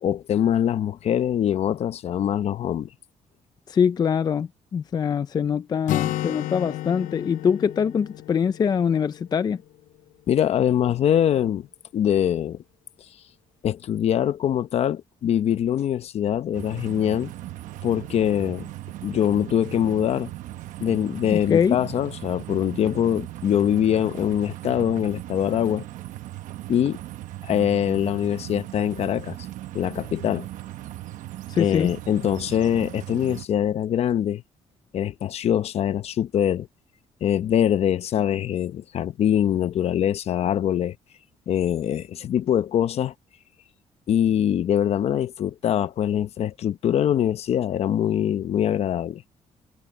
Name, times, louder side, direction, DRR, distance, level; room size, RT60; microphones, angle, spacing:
voice 1, 0.0-2.9 10.3-11.7 11.9-12.6 13.6-17.3 17.8-18.7 19.0-20.3 20.8-25.8 26.7-27.0 27.4-29.4 29.7-30.5 31.6-34.4 34.9-36.7 37.2-41.0 41.5-43.1 44.1-49.2, left 10 dB, 55° left, 0.8 m, -23 dB
voice 2, 3.7-9.6 21.3-21.8 31.5-31.9, left 7 dB, 30° left, 0.4 m, -23 dB
Acoustic guitar, 5.9-9.6, left 15 dB, 90° left, 0.7 m, -32 dB
sound 1, 16.5-33.5, right 15 dB, 85° right, 1.0 m, -38 dB
cardioid pair, 135°, 13 cm